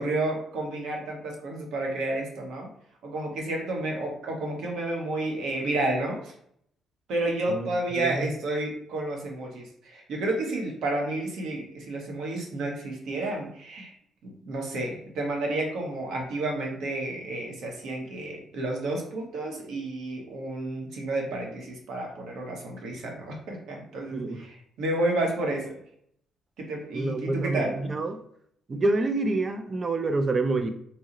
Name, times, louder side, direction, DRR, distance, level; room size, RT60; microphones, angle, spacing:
voice 1, 0.0-2.7 3.0-6.3 7.1-13.9 14.2-25.8 26.6-27.9, right 2 dB, 70° right, 1 dB, 0.8 m, -31 dB
voice 2, 7.5-8.3 24.1-24.4 26.9-28.2 28.7-30.7, right 2 dB, 25° right, 7 dB, 0.3 m, -27 dB
2.8 x 2.0 x 3.7 m, 0.68 s
cardioid pair, 170°, 0 cm